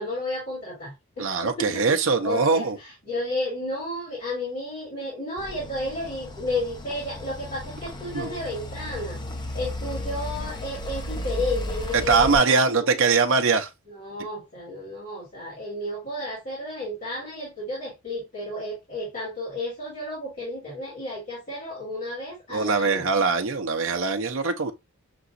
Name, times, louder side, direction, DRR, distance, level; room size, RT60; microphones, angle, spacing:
voice 1, 0.0-9.2 9.5-13.0 13.9-23.1, left 1 dB, 40° left, 2.3 m, -32 dB
voice 2, 1.2-2.8 8.1-8.3 12.1-13.7 22.5-24.7, right 4 dB, 65° right, 0.6 m, -22 dB
sound 1, 5.4-12.4, left 1 dB, 20° left, 0.5 m, -34 dB
6.0 x 2.9 x 2.5 m
head